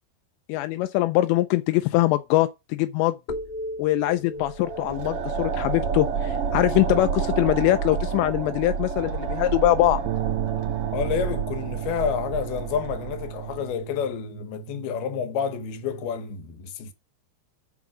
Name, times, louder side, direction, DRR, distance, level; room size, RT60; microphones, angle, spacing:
voice 1, 0.5-3.2 3.8-10.0, left 16 dB, 85° left, 2.8 m, -22 dB
sound 1, 3.3-7.4, left 1 dB, 45° left, 1.2 m, -38 dB
sound 2, 4.4-13.7, right 6 dB, 55° right, 1.6 m, -29 dB
sound 3, 10.1-16.3, right 16 dB, 75° right, 2.2 m, -35 dB
voice 2, 10.9-16.9, left 8 dB, 70° left, 3.0 m, -29 dB
7.1 x 6.0 x 6.2 m
omnidirectional pair, 5.0 m